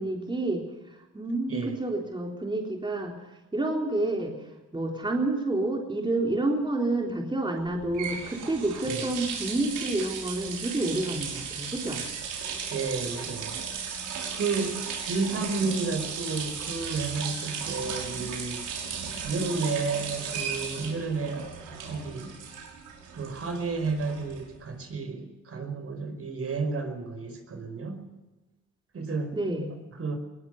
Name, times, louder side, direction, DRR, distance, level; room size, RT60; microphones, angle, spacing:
voice 1, 0.0-12.0 15.2-15.4 29.3-29.8, right 2 dB, 15° right, 0 dB, 3.7 m, -29 dB
sound 1, 7.6-24.7, right 6 dB, 85° right, 5.9 m, -36 dB
voice 2, 12.7-13.6 14.3-18.6 19.2-21.4 21.9-22.3 23.2-28.0 28.9-29.4 30.0-30.2, right 4 dB, 50° right, 7 dB, 5.1 m, -31 dB
21.0 x 20.0 x 6.6 m, 1.1 s
cardioid pair, 90°, 30 cm